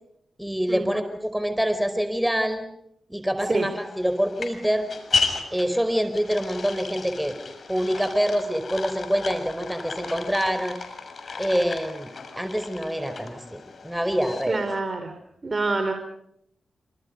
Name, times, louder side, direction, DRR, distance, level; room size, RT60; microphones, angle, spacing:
voice 1, 0.4-2.6 3.1-4.9 5.5-7.4 7.7-10.8 11.4-14.7, equal, 5° right, 9 dB, 4.9 m, -26 dB
sound 1, 3.5-14.8, left 4 dB, 60° left, 6.4 m, -34 dB
voice 2, 14.5-15.1 15.4-15.9, right 3 dB, 45° right, 6 dB, 4.5 m, -26 dB
27.5 x 27.0 x 5.3 m, 0.72 s
cardioid pair, 50°, 0 cm